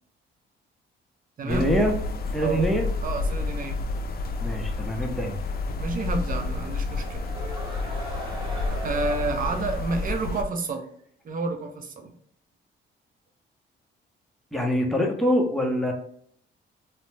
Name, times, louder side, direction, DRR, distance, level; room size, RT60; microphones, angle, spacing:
voice 1, 1.4-1.9 2.3-2.9 4.4-5.4 14.5-15.9, equal, ahead, 0 dB, 0.7 m, -24 dB
sound 1, 1.5-10.4, left 3 dB, 50° left, 0.4 m, -30 dB
voice 2, 3.0-3.8 5.8-7.2 8.8-10.9 11.2-12.1, right 3 dB, 45° right, 5 dB, 0.6 m, -30 dB
sound 2, 6.4-10.9, right 1 dB, 20° right, 1.0 m, -40 dB
2.6 x 2.1 x 3.1 m, 0.63 s
cardioid pair, 90°, 20 cm